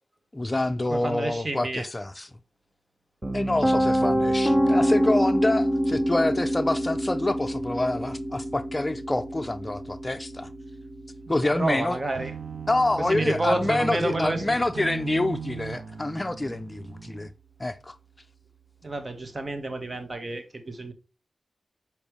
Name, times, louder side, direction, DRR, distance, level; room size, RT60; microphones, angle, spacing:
voice 1, 0.3-2.3 3.3-10.5 11.3-12.0 12.7-17.3 17.6-17.9, left 2 dB, 25° left, 0.5 m, -27 dB
voice 2, 0.9-1.8 11.3-12.3 13.0-14.4 18.8-20.9, right 2 dB, 40° right, 1.7 m, -30 dB
Piano, 3.2-15.1, equal, 25° right, 1.3 m, -27 dB
sound 1, 12.1-17.3, right 6 dB, 80° right, 0.7 m, -38 dB
7.0 x 5.3 x 3.3 m
cardioid pair, 45°, 0 cm